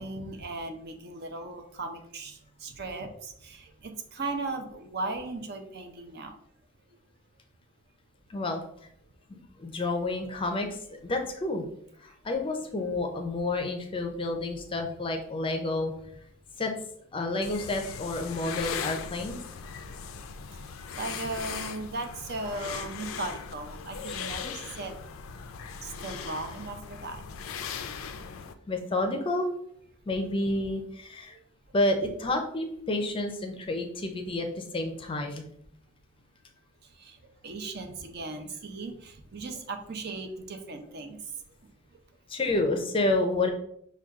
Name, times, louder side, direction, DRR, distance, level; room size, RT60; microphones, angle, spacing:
voice 1, 0.0-6.3 20.9-24.9 25.8-27.2 37.0-37.2 37.4-41.2, right 2 dB, 50° right, 5 dB, 0.6 m, -37 dB
voice 2, 8.3-8.6 9.3-11.6 12.0-15.9 16.6-16.7 17.1-19.4 24.0-24.2 28.7-29.5 30.1-31.3 31.7-35.5 42.3-43.5, left 2 dB, 25° left, 4 dB, 0.5 m, -29 dB
sound 1, 17.4-28.5, left 6 dB, 85° left, 0.4 m, -39 dB
6.1 x 2.3 x 3.5 m, 0.70 s
head